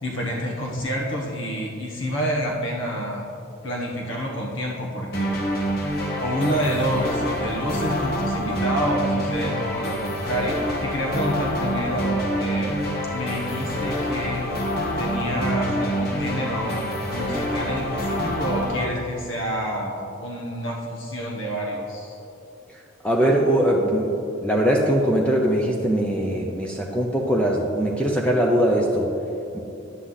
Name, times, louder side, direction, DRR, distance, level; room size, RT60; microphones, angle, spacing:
voice 1, 0.0-3.3 3.6-5.6 6.2-14.5 15.0-22.2, equal, 65° left, -2 dB, 1.4 m, -28 dB
sound 1, 5.1-18.8, equal, 50° left, 1.1 m, -26 dB
voice 2, 23.0-24.1 24.4-29.1 29.5-29.6, right 1 dB, 5° left, -1 dB, 0.6 m, -21 dB
9.9 x 7.9 x 4.0 m, 2.9 s
head